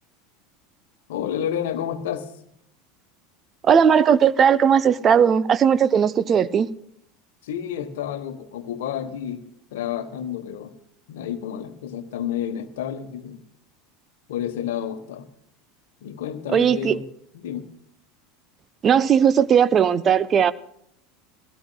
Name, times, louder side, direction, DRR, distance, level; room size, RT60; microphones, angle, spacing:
voice 1, 1.1-2.3 7.4-10.7 11.1-13.5 14.3-15.3 16.0-17.0 17.3-17.7, left 9 dB, 70° left, 10 dB, 1.1 m, -30 dB
voice 2, 3.6-6.7 16.5-17.0 18.8-20.5, right 7 dB, 35° right, 15 dB, 0.6 m, -17 dB
21.0 x 17.0 x 2.3 m, 0.71 s
figure-of-eight pair, 80°, 0 cm